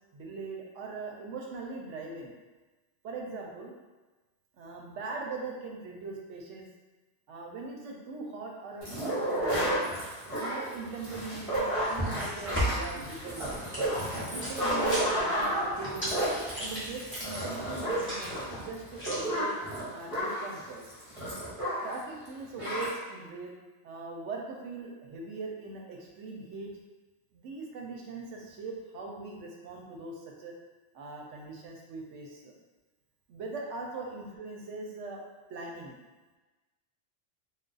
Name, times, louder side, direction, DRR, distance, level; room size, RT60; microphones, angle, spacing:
voice 1, 0.1-2.3 3.0-3.7 4.6-6.7 7.3-9.6 10.4-13.7 14.3-16.2 16.5-19.5 19.9-20.8 21.8-23.6 23.8-26.7 27.3-30.5 30.9-32.5 33.3-35.2 35.5-36.0, right 3 dB, 70° right, -1 dB, 0.8 m, -41 dB
sound 1, 8.8-22.0 22.3-22.4 22.6-22.9, right 1 dB, 30° right, 0.9 m, -32 dB
sound 2, 11.5-19.2, equal, 10° left, 0.6 m, -37 dB
2.3 x 2.3 x 3.8 m, 1.2 s
omnidirectional pair, 1.3 m